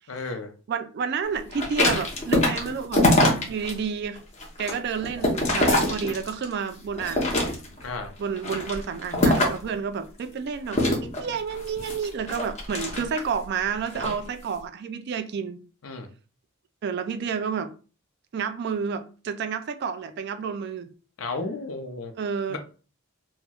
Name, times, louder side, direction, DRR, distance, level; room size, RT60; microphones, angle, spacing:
voice 1, 0.1-0.5 7.8-8.1 15.8-16.1 21.2-22.1 22.5-22.6, left 3 dB, 70° left, 0.6 m, -33 dB
voice 2, 0.7-3.1 3.5-4.2 4.6-7.3 8.2-15.6 16.8-17.7 18.3-20.9 22.2-22.6, right 6 dB, 50° right, 0.3 m, -30 dB
sound 1, 1.5-3.7 4.2-6.5 7.0-7.9 8.4-9.7 10.7-13.4 13.9-14.2, left 1 dB, 30° left, 0.8 m, -24 dB
4.2 x 2.1 x 2.3 m
head